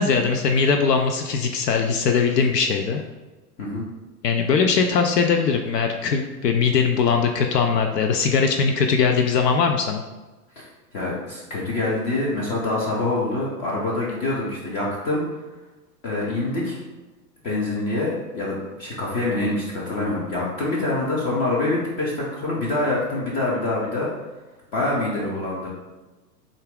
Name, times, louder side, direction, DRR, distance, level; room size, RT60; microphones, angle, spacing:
voice 1, 0.0-3.0 4.2-10.0, left 5 dB, 75° left, 4 dB, 0.6 m, -20 dB
voice 2, 10.9-15.2 16.0-16.8 17.4-24.1 24.7-25.7, left 2 dB, 20° left, -6 dB, 0.4 m, -25 dB
3.9 x 2.4 x 3.6 m, 1.2 s
hypercardioid pair, 105°, 49 cm